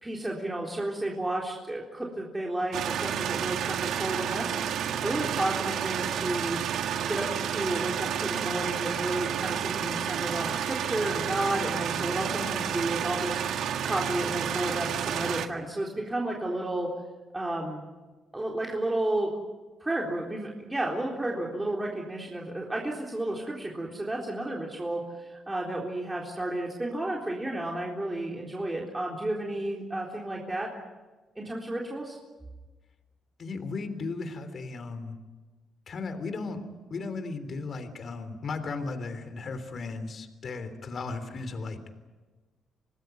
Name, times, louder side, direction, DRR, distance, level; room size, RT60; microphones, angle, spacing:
voice 1, 0.0-6.6 7.0-16.9 17.3-17.8 18.3-19.3 19.8-30.7 31.4-32.2, right 1 dB, 15° right, -2 dB, 3.9 m, -32 dB
sound 1, 2.7-15.5, right 9 dB, 75° right, 1.6 m, -30 dB
voice 2, 33.4-35.2 35.9-36.6 36.9-41.8, left 3 dB, 50° left, 9 dB, 3.3 m, -35 dB
26.5 x 19.5 x 9.4 m, 1.3 s
cardioid pair, 90°, 0 cm